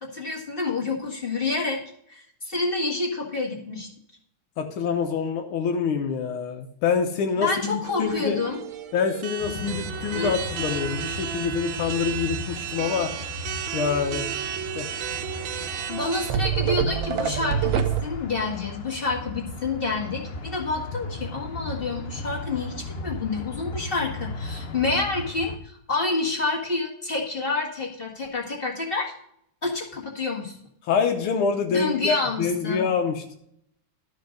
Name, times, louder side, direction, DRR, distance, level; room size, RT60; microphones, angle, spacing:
voice 1, 0.0-1.8 2.1-3.9 7.4-8.6 10.1-10.3 15.4-29.1 29.6-30.6 31.7-32.8, left 3 dB, 30° left, -2 dB, 1.8 m, -28 dB
voice 2, 4.6-8.4 8.9-13.1 13.7-14.3 14.8-14.9 30.8-33.4, left 6 dB, 90° left, 3 dB, 1.8 m, -26 dB
sound 1, 7.8-18.0, right 9 dB, 70° right, 1.3 m, -30 dB
sound 2, 9.4-25.6, left 2 dB, 75° left, 0.5 m, -37 dB
12.0 x 5.1 x 6.4 m, 0.70 s
omnidirectional pair, 2.3 m